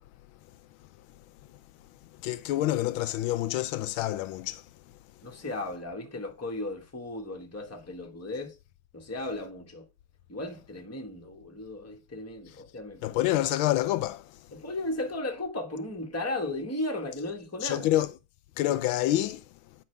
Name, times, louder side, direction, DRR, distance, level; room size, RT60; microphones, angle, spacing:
voice 1, 2.2-4.6 13.0-14.3 17.6-18.1 18.6-19.4, left 14 dB, 90° left, 1.4 m, -27 dB
voice 2, 5.2-8.6 8.9-9.9 10.3-13.2 14.5-17.9, left 2 dB, 10° left, 1.0 m, -35 dB
9.6 x 5.2 x 3.3 m
omnidirectional pair, 2.2 m